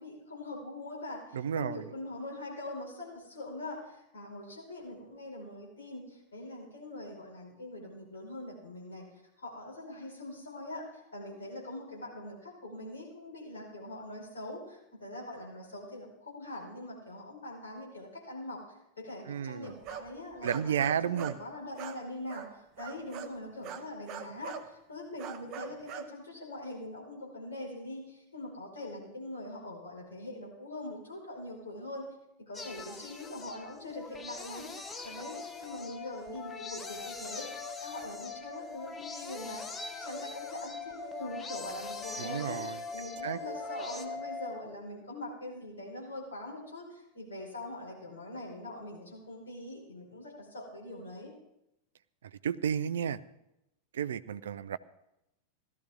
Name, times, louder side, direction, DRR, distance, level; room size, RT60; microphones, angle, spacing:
voice 1, 0.0-9.1 9.4-32.1 32.5-34.7 35.0-42.6 42.9-51.3, left 1 dB, 70° left, -3 dB, 5.2 m, -43 dB
voice 2, 1.3-1.8 19.3-19.7 20.4-21.4 42.2-42.8 43.2-43.4 52.3-53.2 53.9-54.8, right 8 dB, 65° right, 16 dB, 0.5 m, -32 dB
sound 1, 19.6-21.4 21.8-24.7 25.2-26.1, right 8 dB, 35° right, 1.0 m, -43 dB
sound 2, 32.5-44.1, left 2 dB, 15° left, 1.2 m, -45 dB
sound 3, 35.2-44.6, left 5 dB, 55° left, 3.6 m, -43 dB
16.5 x 13.0 x 3.7 m, 0.86 s
figure-of-eight pair, 90°, 0 cm